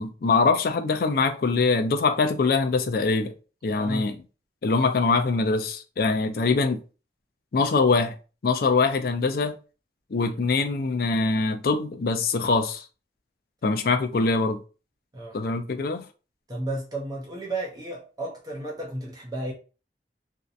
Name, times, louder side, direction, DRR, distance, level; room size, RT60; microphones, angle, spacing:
voice 1, 0.0-3.3 3.6-4.2 4.6-6.8 7.5-8.1 8.4-9.5 10.1-12.9 13.6-14.6 15.3-16.0, left 4 dB, 55° left, 0.4 m, -23 dB
voice 2, 3.7-4.1 10.1-10.3 15.1-15.4 16.5-19.5, right 2 dB, 20° right, 0.5 m, -33 dB
2.7 x 2.1 x 2.4 m
head